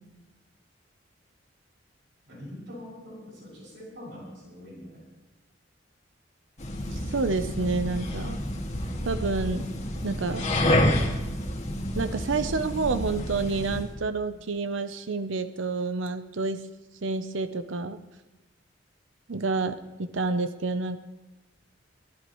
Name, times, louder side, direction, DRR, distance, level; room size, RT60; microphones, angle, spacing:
voice 1, 2.3-5.1, left 1 dB, 70° right, -4 dB, 6.6 m, -43 dB
sound 1, 6.6-13.9, left 1 dB, 40° left, 2.0 m, -29 dB
voice 2, 6.9-8.4 9.0-9.7 10.0-10.4 12.0-16.6 17.0-18.0 19.3-21.0, right 3 dB, 90° right, 11 dB, 0.7 m, -29 dB
23.0 x 15.0 x 3.1 m, 1.1 s
head